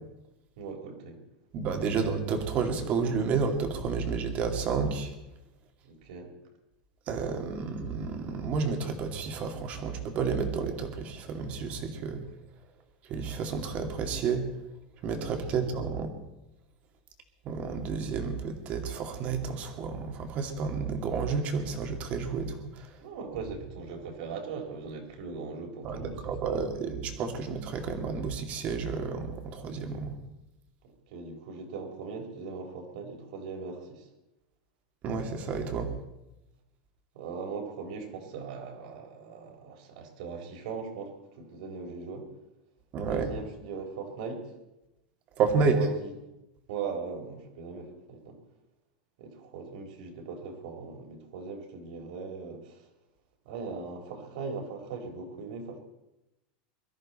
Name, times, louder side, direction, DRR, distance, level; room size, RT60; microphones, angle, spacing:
voice 1, 0.6-1.2 5.8-6.3 15.2-15.7 23.0-26.6 31.1-34.1 37.1-42.3 43.1-44.5 45.7-46.1 46.7-48.4 49.2-52.9 53.4-55.8, right 5 dB, 65° right, 3 dB, 4.2 m, -39 dB
voice 2, 1.5-5.1 7.1-12.2 13.1-14.4 15.0-16.1 17.4-22.9 25.8-30.2 35.0-35.9 42.9-43.3 45.4-45.8, right 5 dB, 30° right, 5 dB, 2.3 m, -31 dB
23.0 x 13.5 x 4.3 m, 0.93 s
supercardioid pair, 165°, 4 cm